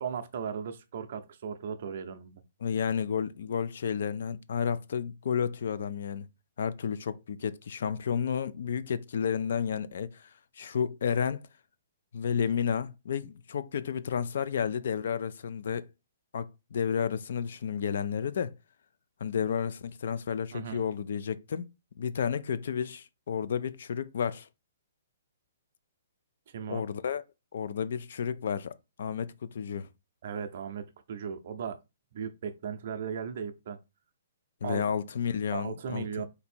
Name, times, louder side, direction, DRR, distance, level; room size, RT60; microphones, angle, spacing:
voice 1, 0.0-2.4 20.5-20.8 26.5-26.8 30.2-31.8 32.1-33.8 34.6-34.8 35.5-36.3, right 7 dB, 45° right, 0.5 m, -37 dB
voice 2, 2.6-6.3 6.6-10.3 10.6-11.4 12.1-15.9 16.3-18.5 19.2-21.7 22.0-24.5 26.7-27.2 27.5-29.9 34.6-36.1, left 7 dB, 55° left, 0.4 m, -31 dB
4.0 x 2.7 x 4.2 m
hypercardioid pair, 170°, 0 cm